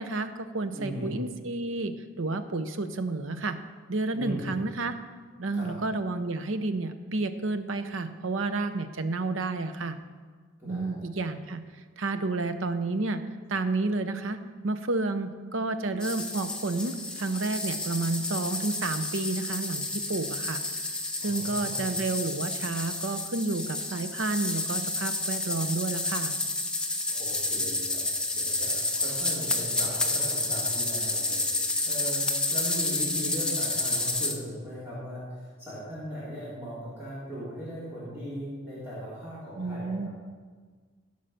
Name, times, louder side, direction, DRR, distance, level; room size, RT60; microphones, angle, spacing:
voice 1, 0.0-3.6 3.9-4.9 5.4-10.0 10.7-11.6 12.0-13.2 13.5-14.4 14.6-20.6 21.2-26.4 39.6-40.1, right 3 dB, 80° right, 10 dB, 0.8 m, -30 dB
voice 2, 0.7-1.1 4.1-4.5 5.5-5.7 10.6-11.0 21.2-21.9 27.1-28.1 28.3-31.5 31.8-32.2 32.5-40.1, equal, 10° right, -11 dB, 3.4 m, -38 dB
sound 1, 16.0-34.3, left 2 dB, 5° left, 0.9 m, -30 dB
15.5 x 5.6 x 6.4 m, 1.5 s
head